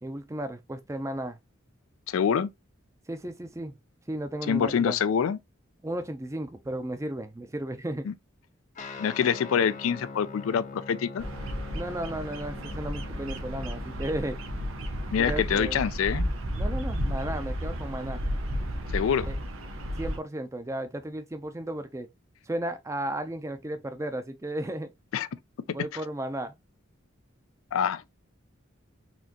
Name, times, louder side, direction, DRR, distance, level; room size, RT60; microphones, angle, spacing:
voice 1, 0.0-1.4 3.1-3.7 4.1-5.0 5.8-8.1 11.7-14.4 15.2-15.8 16.6-18.2 19.3-19.4 20.0-22.1 22.5-24.9 25.7-26.5, right 1 dB, 15° right, 0.5 m, -34 dB
voice 2, 2.1-2.5 4.5-5.4 8.1-8.2 9.0-11.2 15.1-16.3 18.9-19.3 25.1-25.3 27.7-28.1, left 7 dB, 80° left, 0.4 m, -26 dB
Guitar, 8.7-18.6, left 4 dB, 35° left, 0.6 m, -45 dB
Bird vocalization bird call bird song, 11.2-20.2, equal, 85° right, 0.8 m, -33 dB
4.3 x 2.8 x 2.8 m
head